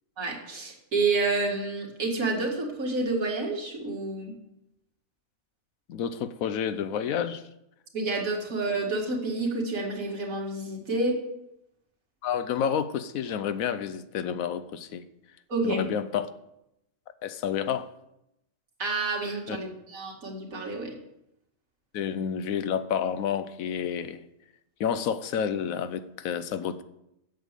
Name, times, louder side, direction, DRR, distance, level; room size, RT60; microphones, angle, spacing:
voice 1, 0.2-4.3 7.9-11.2 15.5-15.9 18.8-21.0, right 3 dB, 80° right, 2.4 m, -29 dB
voice 2, 5.9-7.4 12.2-15.0 15.6-16.3 17.2-17.9 19.5-19.6 21.9-24.3 24.8-26.8, left 8 dB, 80° left, 1.1 m, -29 dB
8.1 x 7.1 x 6.5 m
omnidirectional pair, 1.4 m